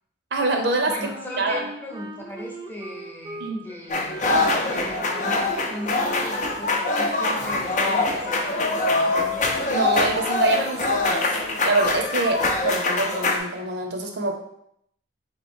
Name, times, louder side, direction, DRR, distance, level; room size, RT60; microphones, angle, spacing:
voice 1, 0.3-0.9 1.4-1.7 3.4-3.7 9.7-11.2 11.6-14.3, right 2 dB, 70° right, 3 dB, 0.7 m, -25 dB
voice 2, 0.9-9.1, left 1 dB, 10° left, -2 dB, 0.8 m, -37 dB
Wind instrument woodwind instrument, 1.1-7.9, right 1 dB, 20° right, 0.5 m, -40 dB
sound 1, 3.9-13.4, left 2 dB, 45° left, 0.5 m, -24 dB
3.9 x 3.0 x 4.4 m, 0.73 s
head